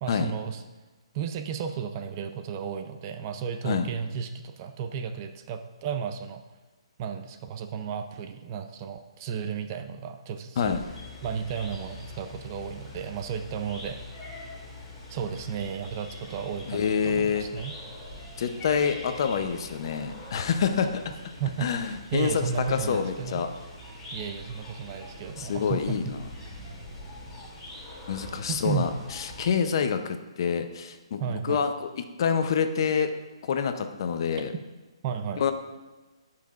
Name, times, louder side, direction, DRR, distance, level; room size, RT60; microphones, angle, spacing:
voice 1, 0.0-0.6 1.1-6.4 7.0-10.8 11.2-14.0 15.1-17.7 21.4-23.4 24.1-26.2 28.5-28.9 31.2-31.7 35.0-35.4, right 7 dB, 35° right, 7 dB, 0.6 m, -33 dB
sound 1, 10.6-29.5, left 1 dB, 15° left, 2.8 m, -44 dB
voice 2, 16.7-17.5 18.4-21.0 21.6-22.4 22.7-23.5 25.4-26.2 28.1-31.9 32.2-33.1 33.4-34.5 35.4-35.5, left 6 dB, 50° left, 7 dB, 0.7 m, -27 dB
14.5 x 5.9 x 2.5 m, 1.2 s
hypercardioid pair, 150°, 3 cm